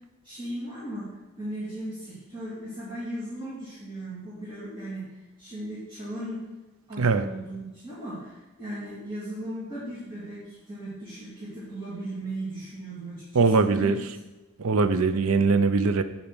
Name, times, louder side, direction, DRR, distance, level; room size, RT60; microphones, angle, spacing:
voice 1, 0.2-6.4 6.9-14.0, right 1 dB, 25° right, -10 dB, 2.5 m, -37 dB
voice 2, 13.3-14.0 14.6-16.0, right 4 dB, 80° right, 11 dB, 0.6 m, -21 dB
8.7 x 4.3 x 6.0 m, 1.1 s
head